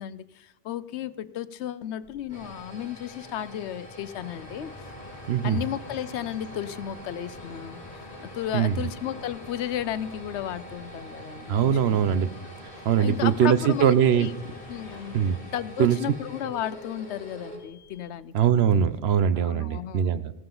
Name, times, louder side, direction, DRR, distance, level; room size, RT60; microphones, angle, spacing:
voice 1, 0.0-4.7 5.4-8.1 8.3-12.0 12.8-14.3 14.7-15.2 15.5-18.3 18.7-18.8 19.4-20.2, left 11 dB, 90° left, 16 dB, 0.9 m, -34 dB
sound 1, 2.0-18.2, equal, 35° right, 4.9 m, -45 dB
sound 2, 4.2-15.4, left 2 dB, 40° left, 1.1 m, -47 dB
voice 2, 5.3-5.6 8.5-8.9 11.5-12.4 12.6-14.3 15.1-15.4 15.8-16.1 18.3-20.3, right 8 dB, 70° right, 13 dB, 0.8 m, -22 dB
16.5 x 12.5 x 3.9 m, 0.98 s
omnidirectional pair, 1.1 m